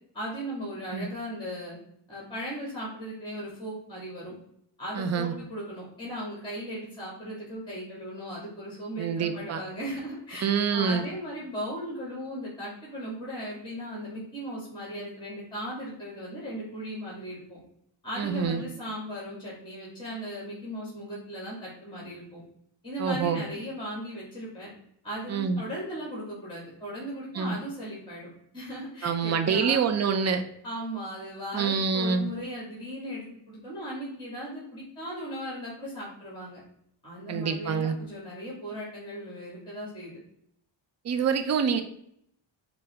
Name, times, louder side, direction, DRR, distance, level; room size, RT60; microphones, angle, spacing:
voice 1, 0.1-1.8 2.1-4.3 4.8-17.6 18.0-22.4 22.8-24.7 25.0-28.3 28.5-29.8 30.6-36.6 37.0-40.2, equal, 10° left, -5 dB, 1.5 m, -37 dB
voice 2, 4.9-5.3 9.0-9.6 10.4-11.0 18.2-18.6 23.0-23.4 25.3-25.6 27.3-27.6 29.0-30.5 31.5-32.3 37.3-38.0 41.0-41.8, right 6 dB, 40° right, 8 dB, 0.4 m, -26 dB
4.7 x 2.0 x 3.2 m, 0.72 s
cardioid pair, 100°, 44 cm